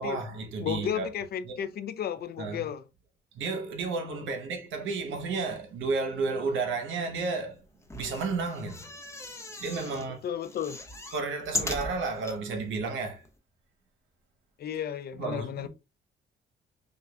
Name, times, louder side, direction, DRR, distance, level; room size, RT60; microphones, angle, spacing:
voice 1, 0.0-1.1 1.5-1.6 2.4-2.6 3.3-7.6 7.9-8.8 9.6-10.2 11.1-13.2 15.2-15.7, right 4 dB, 80° right, 1.0 m, -32 dB
voice 2, 0.6-2.8 10.2-10.8 14.6-15.7, left 9 dB, 50° left, 0.4 m, -33 dB
sound 1, 7.8-10.1 10.4-12.4 13.0-13.1 13.2-13.3, left 2 dB, 15° left, 0.6 m, -37 dB
5.4 x 2.3 x 2.3 m
cardioid pair, 90°, 20 cm